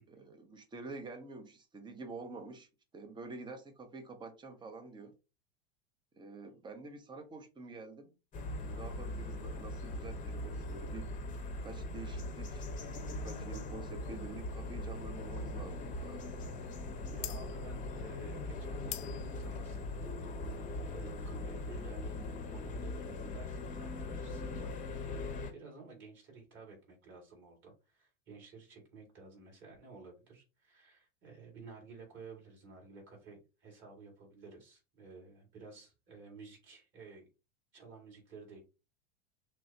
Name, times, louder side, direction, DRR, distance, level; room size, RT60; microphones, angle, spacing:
voice 1, 0.0-2.7 2.9-5.1 6.2-8.1 8.6-11.1 11.6-16.3, right 3 dB, 15° right, 0.8 m, -48 dB
sound 1, 8.3-25.5, left 2 dB, 25° left, 0.9 m, -40 dB
voice 2, 17.1-22.2 22.5-37.3 37.7-38.6, right 4 dB, 35° right, 2.3 m, -53 dB
sound 2, 17.2-22.3, left 15 dB, 70° left, 0.6 m, -48 dB
6.1 x 2.1 x 2.8 m
supercardioid pair, 125°, 32 cm